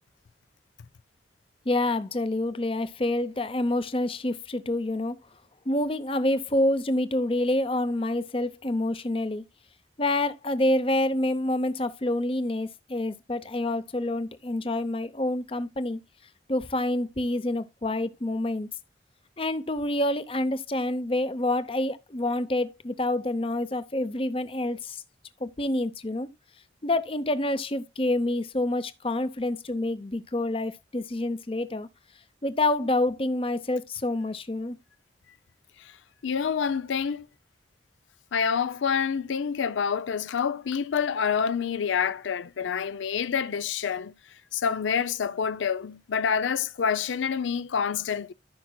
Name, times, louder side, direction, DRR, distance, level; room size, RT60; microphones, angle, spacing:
voice 1, 1.7-5.2 5.7-9.4 10.0-16.0 16.5-18.7 19.4-25.0 25.4-26.3 26.8-31.9 32.4-34.8, left 1 dB, 30° left, 0.7 m, -27 dB
voice 2, 36.2-37.3 38.3-44.1 44.5-48.3, left 6 dB, 85° left, 0.5 m, -27 dB
14.5 x 5.9 x 2.2 m
head